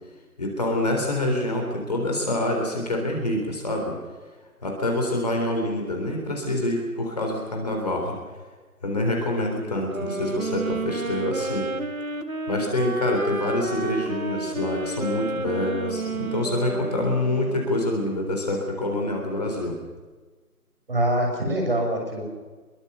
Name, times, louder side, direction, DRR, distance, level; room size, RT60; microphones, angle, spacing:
voice 1, 0.4-4.0 4.6-8.2 8.8-11.7 12.5-19.7, left 1 dB, 25° left, 1 dB, 3.7 m, -26 dB
sound 1, 9.9-17.9, right 2 dB, 60° right, 1.8 m, -31 dB
voice 2, 20.9-22.2, right 1 dB, 35° right, 2 dB, 6.4 m, -24 dB
24.0 x 22.5 x 6.8 m, 1.3 s
figure-of-eight pair, 170°, 46 cm